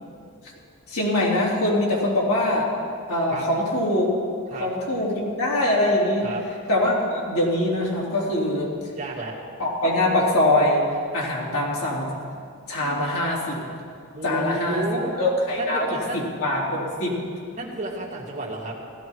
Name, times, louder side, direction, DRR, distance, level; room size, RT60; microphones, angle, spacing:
voice 1, 0.9-2.7 3.1-4.1 4.6-6.3 6.7-8.8 9.6-10.8 11.1-12.1 12.7-13.6 14.2-14.8 15.2-15.8 16.1-17.2, left 1 dB, 85° left, -5 dB, 3.9 m, -23 dB
voice 2, 8.9-9.4 14.1-15.2 15.5-16.2 17.5-18.8, right 2 dB, 35° right, -3 dB, 2.3 m, -31 dB
16.0 x 14.0 x 4.7 m, 2.3 s
head